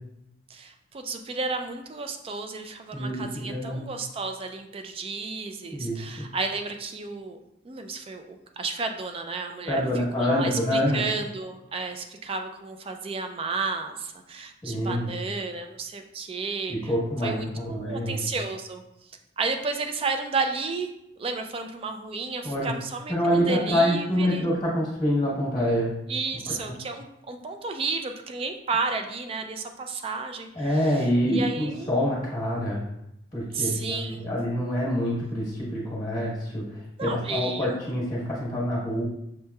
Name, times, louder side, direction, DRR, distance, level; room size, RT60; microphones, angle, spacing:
voice 1, 0.5-7.4 7.6-16.9 17.2-18.8 19.4-20.9 21.2-24.4 26.1-30.8 31.3-31.9 33.5-34.2 37.0-37.8, right 4 dB, 30° right, 6 dB, 0.3 m, -32 dB
voice 2, 2.9-3.8 5.7-6.3 9.7-11.0 14.6-15.1 16.7-18.2 22.4-22.7 23.1-25.9 26.5-26.7 30.5-32.8 33.3-36.6 37.0-39.0, equal, 20° left, -6 dB, 1.0 m, -26 dB
6.3 x 3.0 x 2.2 m, 0.84 s
head